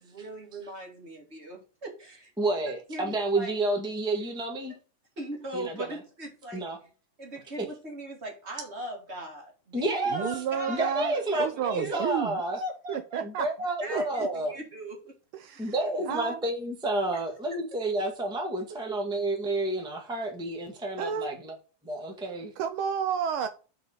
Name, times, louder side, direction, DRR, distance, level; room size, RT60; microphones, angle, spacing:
voice 1, 0.0-2.3 2.9-3.6 5.2-6.6 7.2-12.2 12.6-13.4 13.8-15.1 17.1-17.2 17.5-17.6, right 1 dB, 30° right, 2.6 m, -39 dB
voice 2, 2.4-4.7 5.5-5.9 6.5-6.8 9.7-10.3 10.7-12.6 13.2-14.6 15.6-21.6 21.8-22.5, right 2 dB, ahead, 1.2 m, -30 dB
voice 3, 10.1-12.4 12.9-13.5 13.9-14.0 15.3-15.7 16.1-16.4 21.0-21.3 22.6-23.5, right 8 dB, 75° right, 1.5 m, -31 dB
6.3 x 4.9 x 6.2 m
omnidirectional pair, 2.4 m